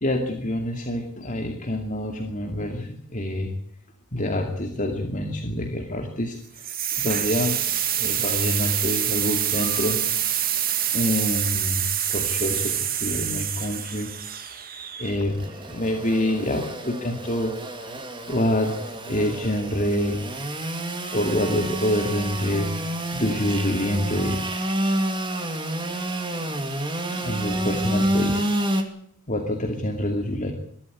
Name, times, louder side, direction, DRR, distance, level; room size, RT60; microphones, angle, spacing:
voice 1, 0.0-3.5 4.1-7.6 8.0-10.4 10.9-12.8 13.0-14.1 15.0-17.5 17.8-17.9 18.3-20.2 21.1-24.4 27.1-28.4 29.3-30.5, left 1 dB, 35° left, 3 dB, 2.4 m, -26 dB
sound 1, 6.6-15.4, right 10 dB, 40° right, 2.1 m, -26 dB
Engine / Sawing, 15.0-28.8, right 1 dB, 20° right, 2.6 m, -29 dB
22.5 x 13.0 x 9.8 m, 0.65 s
head